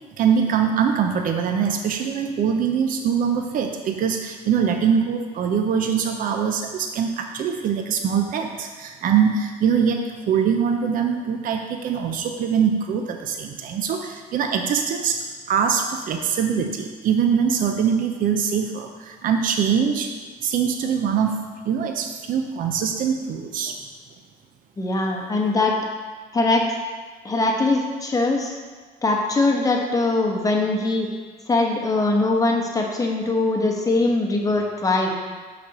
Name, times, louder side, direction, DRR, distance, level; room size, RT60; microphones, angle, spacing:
voice 1, 0.2-20.1 20.4-23.8, right 7 dB, 55° right, 4 dB, 0.6 m, -23 dB
voice 2, 24.8-25.8 26.3-26.7 27.2-28.5 29.0-31.1 31.5-35.1, left 2 dB, 20° left, 0 dB, 1.1 m, -21 dB
5.9 x 4.2 x 6.0 m, 1.4 s
cardioid pair, 110°, 17 cm